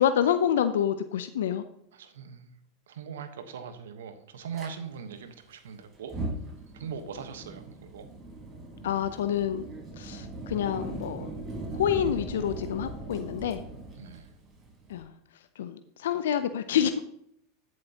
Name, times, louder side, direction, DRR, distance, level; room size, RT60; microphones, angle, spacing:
voice 1, 0.0-1.6 8.8-9.7 10.0-11.3 11.7-13.6 14.9-15.1 15.6-17.0, left 9 dB, 75° left, 10 dB, 0.6 m, -27 dB
voice 2, 1.9-2.5 2.9-8.1 14.0-14.3, right 7 dB, 80° right, 9 dB, 1.2 m, -41 dB
Fire, 4.5-4.7 6.0-15.0, right 2 dB, 30° right, 3.9 m, -39 dB
14.0 x 7.6 x 2.9 m, 0.71 s
hypercardioid pair, 95°, 0 cm